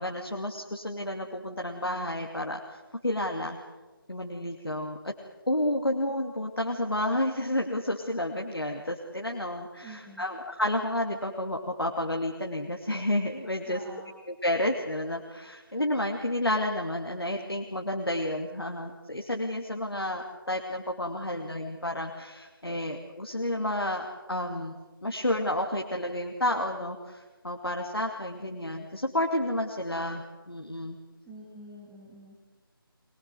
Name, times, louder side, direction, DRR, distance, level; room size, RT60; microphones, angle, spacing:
voice 1, 0.0-3.6 4.1-5.1 5.5-13.8 14.3-31.0, left 1 dB, 80° left, 2 dB, 2.6 m, -31 dB
voice 2, 9.8-10.2 13.6-14.1 31.3-32.4, right 1 dB, 5° right, -5 dB, 2.4 m, -47 dB
23.0 x 22.5 x 7.9 m, 1.2 s
figure-of-eight pair, 160°, 12 cm